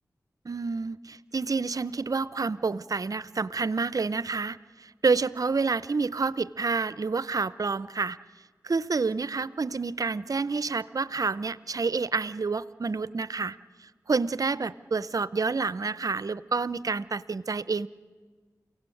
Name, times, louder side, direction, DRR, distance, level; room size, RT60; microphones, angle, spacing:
voice 1, 0.4-8.2 8.6-13.6 14.1-17.9, right 4 dB, 60° right, 17 dB, 0.6 m, -28 dB
29.5 x 17.0 x 8.6 m, 1.5 s
cardioid pair, 45°, 7 cm